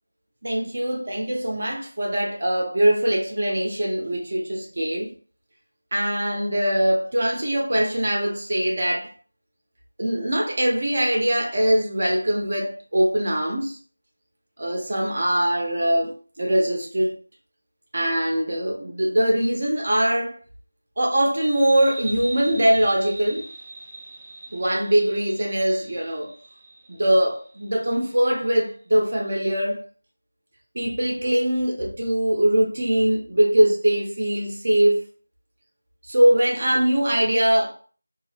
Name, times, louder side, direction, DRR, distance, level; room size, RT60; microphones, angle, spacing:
voice 1, 0.4-5.1 5.9-9.1 10.0-13.8 14.6-17.1 17.9-20.4 21.0-23.5 24.5-26.3 26.9-29.8 30.7-35.0 36.1-37.7, right 1 dB, 45° right, 0.8 m, -22 dB
sound 1, 21.4-28.6, right 2 dB, 20° right, 0.3 m, -41 dB
2.7 x 2.0 x 2.4 m
figure-of-eight pair, 170°, 0 cm